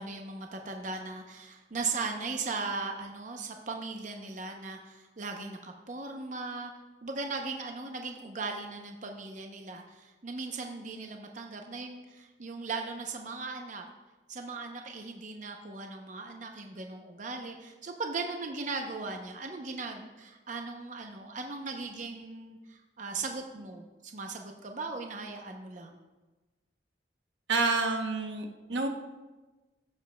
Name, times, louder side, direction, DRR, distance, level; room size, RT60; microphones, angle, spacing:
voice 1, 0.0-6.7 7.0-13.9 14.3-26.0, right 3 dB, 40° right, 3 dB, 0.6 m, -38 dB
voice 2, 27.5-28.9, right 3 dB, 75° right, 4 dB, 0.9 m, -28 dB
15.5 x 7.3 x 2.2 m, 1.2 s
head